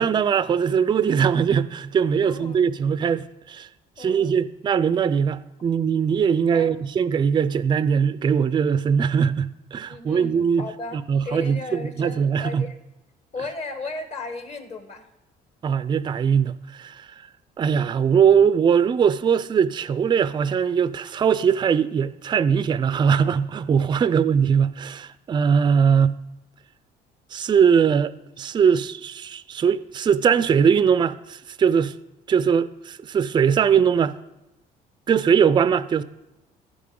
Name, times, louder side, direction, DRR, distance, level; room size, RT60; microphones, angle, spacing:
voice 1, 0.0-3.7 4.0-10.6 11.1-12.6 15.6-17.1 17.6-26.2 27.3-31.9 32.3-34.2 35.1-36.0, right 7 dB, 25° right, 0.4 m, -21 dB
voice 2, 2.2-2.7 4.0-4.3 6.5-6.8 9.9-12.8 13.3-15.1 24.0-24.3, left 3 dB, 40° left, 1.4 m, -36 dB
15.0 x 5.0 x 3.8 m
cardioid pair, 110°, 17 cm